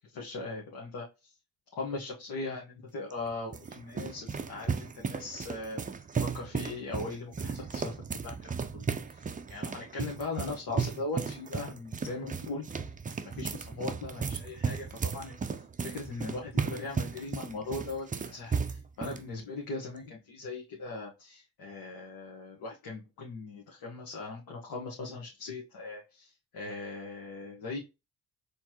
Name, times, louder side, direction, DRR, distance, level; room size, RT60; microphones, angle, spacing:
voice 1, 0.1-1.3 1.8-5.8 6.1-12.9 13.2-27.8, left 3 dB, 60° left, -1 dB, 1.4 m, -39 dB
sound 1, 3.1-19.2, right 5 dB, 20° right, 0.5 m, -35 dB
4.3 x 3.2 x 2.9 m, 0.26 s
cardioid pair, 80°, 40 cm